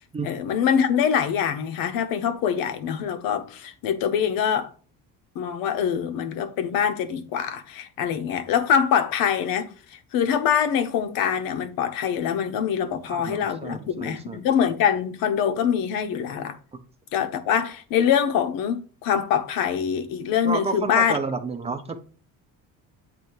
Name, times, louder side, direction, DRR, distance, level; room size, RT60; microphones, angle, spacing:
voice 1, 0.2-4.7 5.3-16.6 17.1-21.2, left 8 dB, 75° left, 0.9 m, -24 dB
voice 2, 13.1-14.4 20.4-22.0, right 4 dB, 20° right, 0.6 m, -30 dB
7.8 x 2.7 x 4.6 m
cardioid pair, 140°, 35 cm